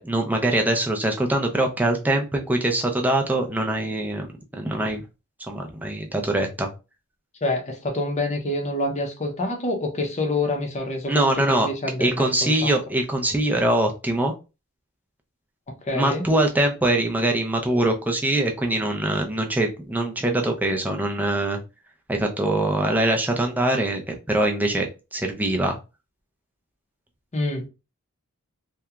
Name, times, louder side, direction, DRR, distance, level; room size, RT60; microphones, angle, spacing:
voice 1, 0.0-5.0 5.5-6.7 11.1-11.7 12.0-14.3 15.9-21.6 22.1-25.8, right 1 dB, 10° right, 0.4 m, -23 dB
voice 2, 7.4-12.8 15.7-16.2 27.3-27.7, left 2 dB, 30° left, 0.6 m, -27 dB
2.8 x 2.2 x 2.3 m
head